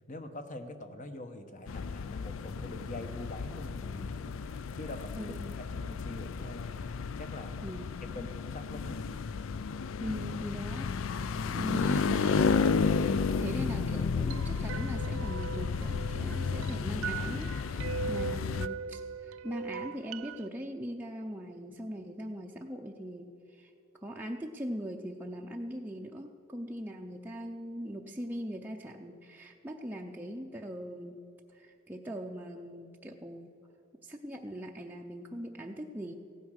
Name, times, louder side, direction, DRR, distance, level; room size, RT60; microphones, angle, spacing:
voice 1, 0.1-6.8 7.2-7.6 8.0-9.2, left 1 dB, 40° left, 8 dB, 1.0 m, -44 dB
sound 1, 1.7-18.7, left 5 dB, 75° left, 0.4 m, -32 dB
voice 2, 5.2-5.6 7.6-8.3 10.0-23.7 24.0-31.2 31.5-33.5 34.0-36.1, equal, 10° right, 0 dB, 0.5 m, -40 dB
sound 2, 14.3-20.5, right 6 dB, 90° right, 0.4 m, -40 dB
15.5 x 9.3 x 6.4 m, 2.7 s
head